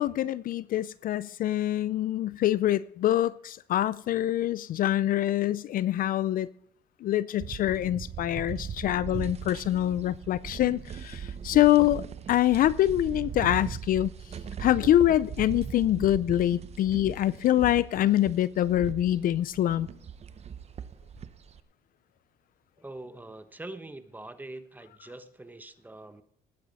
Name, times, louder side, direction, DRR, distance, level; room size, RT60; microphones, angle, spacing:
voice 1, 0.0-6.5 7.0-12.0 12.3-14.1 14.6-19.9, left 13 dB, 55° left, 0.4 m, -25 dB
sound 1, 7.4-21.6, right 7 dB, 40° right, 0.8 m, -39 dB
voice 2, 22.8-26.2, right 2 dB, 10° right, 1.1 m, -43 dB
19.0 x 8.8 x 4.1 m
cardioid pair, 110°, 17 cm